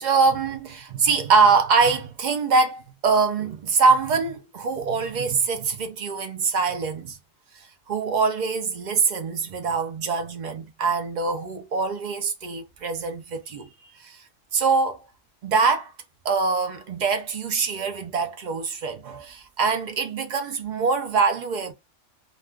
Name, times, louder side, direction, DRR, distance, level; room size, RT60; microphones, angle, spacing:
voice 1, 0.0-7.2 7.5-14.2 14.5-15.0 15.4-15.9 16.2-21.7, right 4 dB, 65° right, 0.4 m, -23 dB
2.3 x 2.3 x 3.3 m
omnidirectional pair, 1.4 m